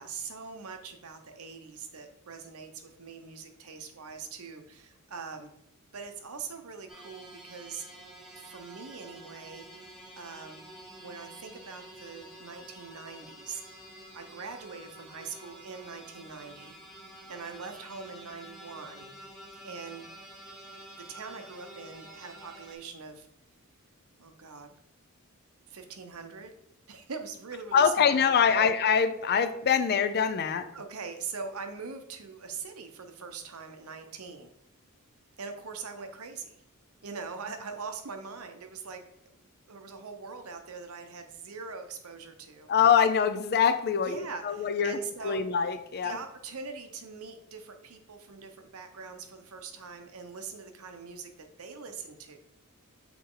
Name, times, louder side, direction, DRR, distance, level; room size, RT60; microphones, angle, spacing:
voice 1, 0.0-5.5 5.9-7.8 8.4-10.6 11.0-13.8 14.1-16.8 17.3-19.1 19.6-20.1 21.1-23.3 24.2-24.7 25.7-26.5 26.9-28.7 30.7-34.5 35.4-36.6 37.0-39.0 39.4-42.7 44.0-45.5 46.0-52.4, right 5 dB, 75° right, 6 dB, 0.8 m, -42 dB
sound 1, 6.9-22.8, right 1 dB, ahead, 1.2 m, -49 dB
voice 2, 27.7-30.7 42.7-46.2, left 7 dB, 45° left, 11 dB, 0.5 m, -24 dB
6.0 x 4.2 x 3.8 m, 0.78 s
head